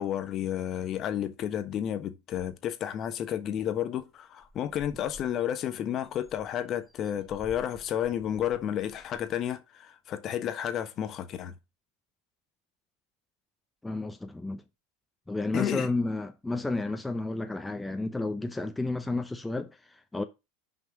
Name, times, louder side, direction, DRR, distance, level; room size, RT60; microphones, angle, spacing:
voice 1, 0.0-11.5 15.5-15.9, left 10 dB, 40° left, 1.3 m, -31 dB
sound 1, 2.6-3.1 3.5-3.6 3.8-4.1 4.4-9.4, equal, 10° right, 2.3 m, -53 dB
voice 2, 13.8-14.6 15.3-20.2, left 2 dB, 10° left, 0.8 m, -32 dB
6.1 x 5.4 x 6.5 m
hypercardioid pair, 90°, 0 cm